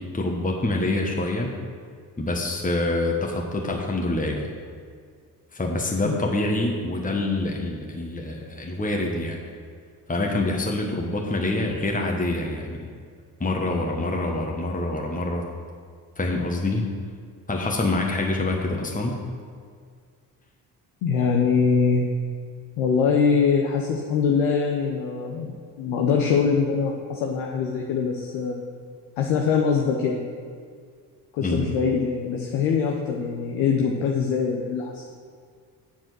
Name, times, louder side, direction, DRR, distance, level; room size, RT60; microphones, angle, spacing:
voice 1, 0.0-1.5 2.2-4.5 5.5-9.4 10.1-12.9 13.4-15.4 16.2-16.9 17.5-19.2 31.4-31.7, left 2 dB, 15° left, 0 dB, 1.3 m, -26 dB
voice 2, 21.0-22.1 22.8-28.6 29.2-30.2 31.3-35.0, left 5 dB, 75° left, 1 dB, 0.9 m, -23 dB
7.5 x 7.2 x 6.2 m, 2.1 s
hypercardioid pair, 50°, 48 cm